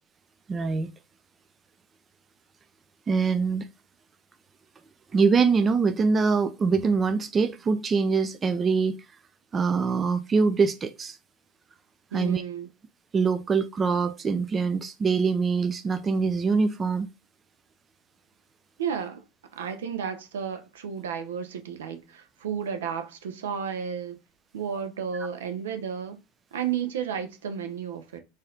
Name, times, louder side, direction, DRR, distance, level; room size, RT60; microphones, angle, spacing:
voice 1, 0.5-0.9 3.1-3.7 5.1-9.0 9.5-11.2 12.1-12.4 13.1-17.1, right 5 dB, 25° right, 0.3 m, -24 dB
voice 2, 12.1-12.7 18.8-19.2 19.5-24.2 24.5-26.2 26.5-28.2, right 7 dB, 70° right, 0.6 m, -32 dB
4.0 x 2.6 x 3.7 m
figure-of-eight pair, 80°, 0 cm